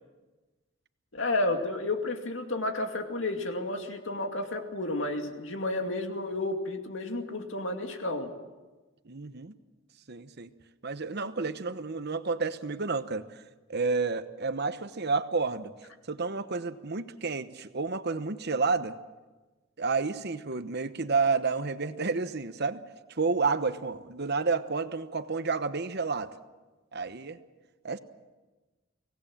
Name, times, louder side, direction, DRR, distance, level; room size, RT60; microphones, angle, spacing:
voice 1, 1.1-8.3, left 2 dB, 65° left, 4 dB, 2.4 m, -31 dB
voice 2, 9.1-9.5 10.1-10.5 10.8-13.4 13.7-15.7 16.1-19.0 19.8-22.8 23.1-26.3 26.9-27.4 27.8-28.0, right 4 dB, 55° right, 11 dB, 1.0 m, -30 dB
24.0 x 18.0 x 7.4 m, 1.2 s
head